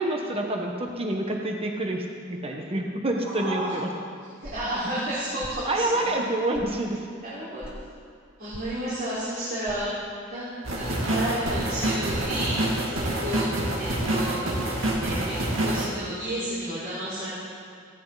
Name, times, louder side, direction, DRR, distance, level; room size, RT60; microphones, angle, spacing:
voice 1, 0.0-3.9 5.6-7.0 13.2-13.3, right 1 dB, 30° right, 1 dB, 1.3 m, -27 dB
voice 2, 3.2-3.7 4.4-6.1 7.2-7.7 8.4-9.9 10.3-10.4 10.7-12.5 12.9-13.5 13.7-14.5 14.9-17.3, right 1 dB, 50° right, -11 dB, 4.7 m, -31 dB
sound 1, 4.4-4.7 5.4-5.6 6.5-6.7 7.6-7.8 8.5-8.7 9.7-9.8 10.6-10.8 11.4-11.6 12.1-12.4 12.9-13.2 13.9-14.2 14.9-15.0, equal, 5° right, 1.4 m, -42 dB
sound 2, 10.6-15.9, right 1 dB, 75° right, 2.4 m, -27 dB
18.5 x 16.0 x 4.1 m, 2.3 s
head